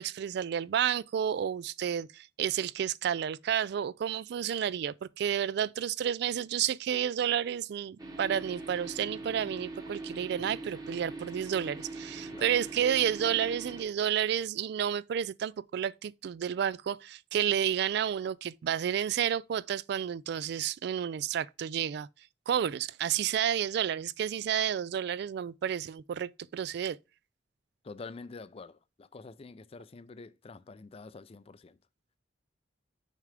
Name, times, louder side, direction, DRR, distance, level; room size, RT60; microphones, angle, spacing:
voice 1, 0.0-22.1 22.5-27.0, right 9 dB, 65° right, 0.3 m, -31 dB
sound 1, 8.0-13.8, right 2 dB, 20° right, 1.1 m, -42 dB
voice 2, 27.8-31.8, left 3 dB, 35° left, 0.4 m, -47 dB
6.4 x 3.4 x 5.1 m
head